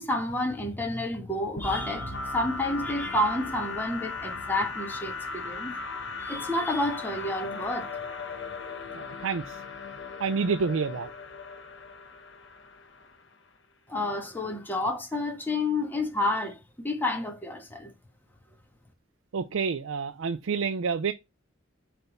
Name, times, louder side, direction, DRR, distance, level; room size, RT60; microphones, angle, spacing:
voice 1, 0.0-5.7 6.2-7.9 13.9-17.9, left 1 dB, 10° left, 1.5 m, -30 dB
sound 1, 1.6-13.3, left 3 dB, 65° left, 1.2 m, -37 dB
voice 2, 8.9-9.6 10.2-11.1 19.3-21.1, right 5 dB, 90° right, 0.5 m, -28 dB
7.9 x 3.5 x 5.4 m
head